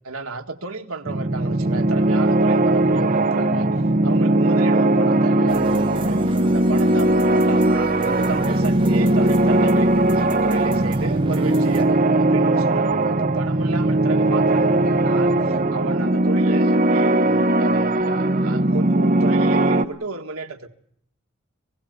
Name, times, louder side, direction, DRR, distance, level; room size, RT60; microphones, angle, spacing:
voice 1, 0.0-3.7 4.0-20.7, right 3 dB, 90° right, 5 dB, 1.7 m, -32 dB
sound 1, 1.1-19.8, right 1 dB, 40° right, 1.0 m, -19 dB
sound 2, 5.5-11.8, right 1 dB, 25° right, 3.2 m, -31 dB
26.0 x 18.0 x 7.9 m, 0.71 s
head